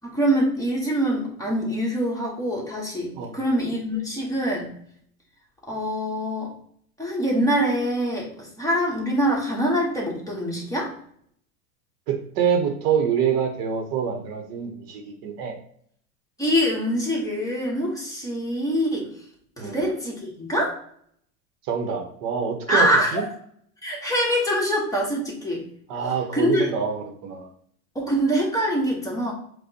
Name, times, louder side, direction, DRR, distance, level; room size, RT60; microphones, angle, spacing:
voice 1, 0.0-4.7 5.7-6.5 7.0-10.9 16.4-19.1 19.6-20.7 22.7-23.3 23.8-25.6 26.3-26.7 27.9-29.3, equal, 10° left, -3 dB, 1.0 m, -24 dB
voice 2, 12.1-15.6 19.6-19.8 21.7-23.2 25.9-27.5, right 7 dB, 55° right, 4 dB, 0.7 m, -26 dB
4.8 x 2.1 x 2.8 m, 0.64 s
hypercardioid pair, 105°, 42 cm